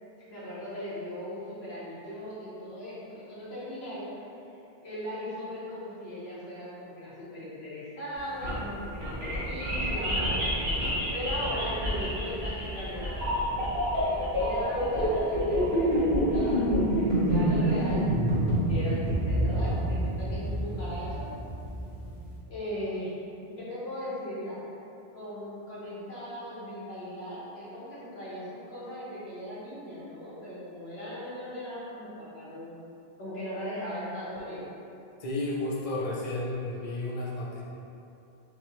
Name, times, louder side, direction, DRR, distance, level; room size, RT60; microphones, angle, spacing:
voice 1, 0.3-4.1 4.8-10.4 11.1-13.2 13.9-18.1 18.7-21.3 22.5-23.1 23.5-24.6 25.1-32.7 33.2-34.7, equal, 80° left, -9 dB, 1.5 m, -38 dB
sound 1, 8.2-22.3, equal, 80° right, 1.7 m, -27 dB
voice 2, 35.2-37.6, left 2 dB, 40° left, -6 dB, 0.6 m, -32 dB
4.5 x 3.1 x 3.1 m, 2.7 s
omnidirectional pair, 1.0 m